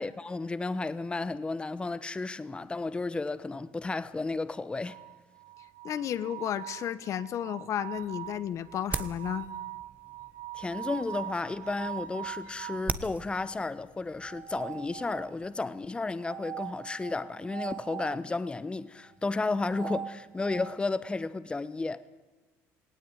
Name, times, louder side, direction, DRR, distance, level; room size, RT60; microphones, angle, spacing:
voice 1, 0.0-5.0 10.5-22.0, left 3 dB, 15° left, 1.1 m, -33 dB
sound 1, 4.8-13.0 14.2-15.5 16.2-18.2 19.4-20.8, right 11 dB, 60° right, 1.2 m, -42 dB
voice 2, 5.8-9.5, left 10 dB, 55° left, 1.2 m, -33 dB
sound 2, 7.9-15.6, right 4 dB, 25° right, 1.4 m, -42 dB
19.0 x 17.0 x 9.8 m
supercardioid pair, 95°, 6 cm